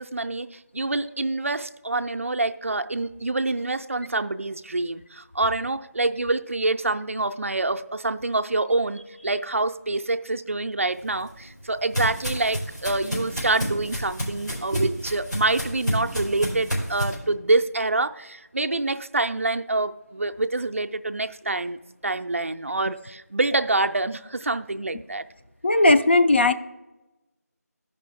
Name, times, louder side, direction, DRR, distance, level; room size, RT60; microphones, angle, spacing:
voice 1, 0.0-21.8 22.0-25.2, right 2 dB, 50° right, 8 dB, 0.4 m, -26 dB
sound 1, 11.0-17.2, equal, 85° left, 3.3 m, -30 dB
voice 2, 25.6-26.5, left 2 dB, 40° left, 7 dB, 0.4 m, -17 dB
13.5 x 5.4 x 3.4 m, 1.0 s
figure-of-eight pair, 170°, 9 cm